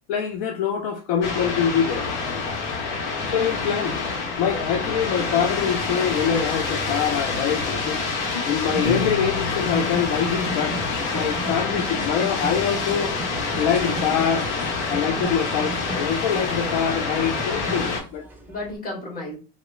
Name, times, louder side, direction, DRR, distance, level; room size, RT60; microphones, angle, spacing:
voice 1, 0.1-2.0 3.3-4.0 4.4-8.0 8.5-10.8 11.1-13.2 13.6-14.5 14.9-18.3, left 8 dB, 65° left, 0.5 m, -24 dB
sound 1, 1.2-18.0, left 4 dB, 85° left, 0.9 m, -27 dB
voice 2, 3.8-4.4 8.2-8.5 18.5-19.4, left 2 dB, 25° left, 1.4 m, -35 dB
sound 2, 8.7-18.8, right 1 dB, 5° right, 0.5 m, -36 dB
Piano, 8.8-11.0, left 4 dB, 45° left, 1.4 m, -33 dB
2.9 x 2.0 x 2.2 m
supercardioid pair, 110°, 35 cm